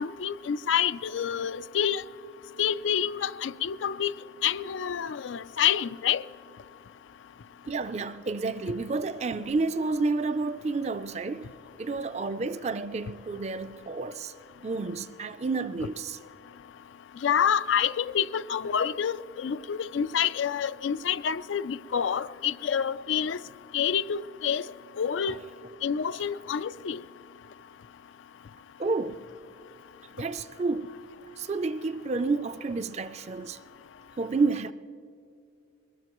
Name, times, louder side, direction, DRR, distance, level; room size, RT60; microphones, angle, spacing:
voice 1, 0.0-2.0 2.6-4.1 4.4-6.2 17.2-23.4 23.7-24.6 25.0-25.4 25.8-27.0, left 8 dB, 85° left, 0.4 m, -27 dB
voice 2, 7.7-11.5 11.8-14.3 14.6-16.2 25.3-25.4 28.8-29.3 30.2-30.9 31.4-33.6 34.2-34.7, right 3 dB, 35° right, 0.4 m, -30 dB
21.5 x 21.0 x 3.0 m
head